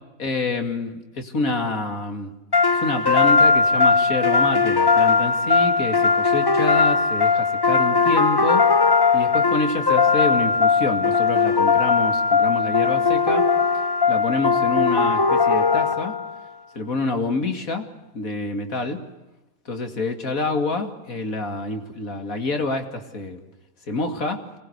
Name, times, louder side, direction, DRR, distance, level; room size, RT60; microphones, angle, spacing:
voice 1, 0.2-2.3 2.7-8.7 9.1-13.5 14.1-16.2 16.7-17.9 18.1-19.0 19.7-23.4 23.9-24.4, left 3 dB, 80° left, 6 dB, 3.0 m, -27 dB
sound 1, 2.5-16.4, left 4 dB, 20° left, 0.8 m, -19 dB
25.5 x 20.0 x 8.2 m, 1.0 s
omnidirectional pair, 1.5 m